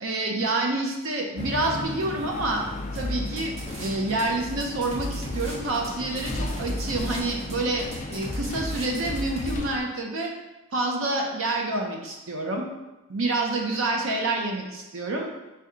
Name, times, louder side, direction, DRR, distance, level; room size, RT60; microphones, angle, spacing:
voice 1, 0.0-2.6 2.9-10.3 10.7-12.7 13.1-15.3, right 2 dB, 75° right, 1 dB, 0.6 m, -28 dB
sound 1, 1.4-9.8, left 2 dB, 35° left, 0.3 m, -36 dB
sound 2, 2.9-4.2 4.5-9.6, equal, 30° right, 0.8 m, -34 dB
4.1 x 2.3 x 3.7 m, 1.0 s
head